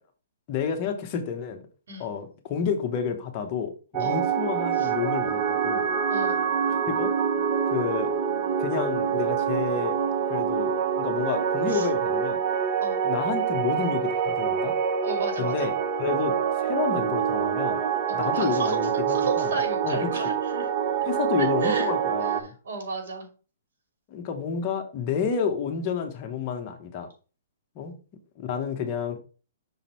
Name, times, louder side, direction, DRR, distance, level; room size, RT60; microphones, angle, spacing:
voice 1, 0.5-1.6 2.0-5.9 7.0-7.1 7.7-8.2 8.6-10.0 10.3-12.4 13.0-14.7 15.4-15.7 16.0-17.8 18.1-19.5 19.8-20.1 21.0-22.5 24.1-27.1 27.7-27.9 28.4-29.2, left 6 dB, 30° left, 4 dB, 1.0 m, -30 dB
voice 2, 1.9-2.2 4.0-4.3 4.8-4.9 6.1-6.4 11.7-11.9 12.8-13.0 15.0-15.7 18.3-18.8 19.1-20.7 21.4-21.9 22.4-23.3, right 3 dB, 75° right, 3 dB, 2.7 m, -33 dB
sound 1, 3.9-22.4, right 7 dB, 30° right, 0.8 m, -26 dB
6.1 x 3.8 x 4.3 m, 0.35 s
hypercardioid pair, 160°, 0 cm